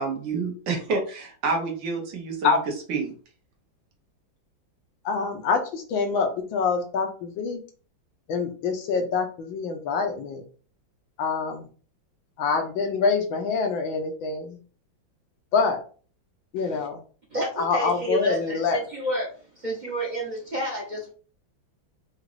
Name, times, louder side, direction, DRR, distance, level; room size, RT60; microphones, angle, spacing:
voice 1, 0.0-2.6 2.9-3.1, right 4 dB, 75° right, 2 dB, 1.8 m, -28 dB
voice 2, 5.0-7.6 8.3-10.4 11.2-11.7 12.4-14.6 15.5-15.8 16.5-17.0 17.6-18.8, left 5 dB, 80° left, 5 dB, 1.6 m, -25 dB
voice 3, 16.6-16.9 17.3-19.3 19.5-21.1, right 1 dB, 35° right, -2 dB, 0.8 m, -30 dB
4.9 x 2.5 x 3.2 m, 0.40 s
omnidirectional pair, 2.1 m